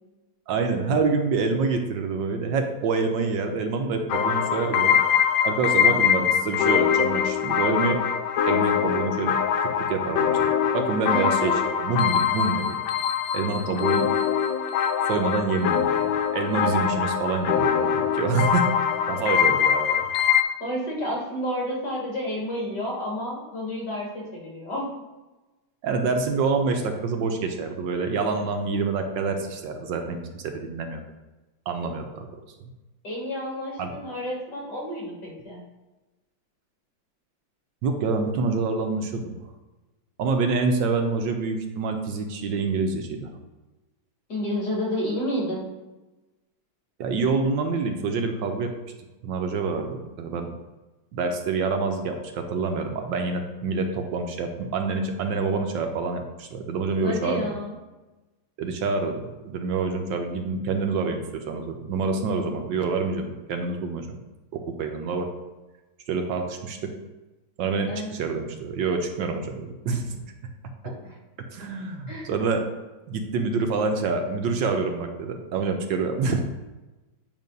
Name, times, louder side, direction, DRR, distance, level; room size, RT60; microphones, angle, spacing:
voice 1, 0.5-5.0 5.4-8.0 8.5-9.4 9.9-10.5 10.7-12.7 13.3-14.1 15.1-16.0 16.3-18.7 19.1-20.0 25.8-30.2 30.4-31.0 31.7-32.3 32.6-32.7 33.8-33.9 37.8-39.4 40.2-43.3 47.0-48.7 49.2-50.5 51.1-57.5 58.6-64.2 64.5-65.3 66.1-66.9 67.6-70.2 71.5-72.6 73.1-76.4, right 4 dB, 75° right, 4 dB, 1.4 m, -26 dB
sound 1, 4.1-20.4, left 8 dB, 90° left, 1.4 m, -23 dB
voice 2, 11.1-11.6 20.6-24.9 33.0-35.6 44.3-45.7 57.0-57.8 67.9-68.1 71.0-71.2 72.1-72.3, equal, 60° left, -4 dB, 2.8 m, -30 dB
9.0 x 3.1 x 5.2 m, 1.1 s
omnidirectional pair, 2.1 m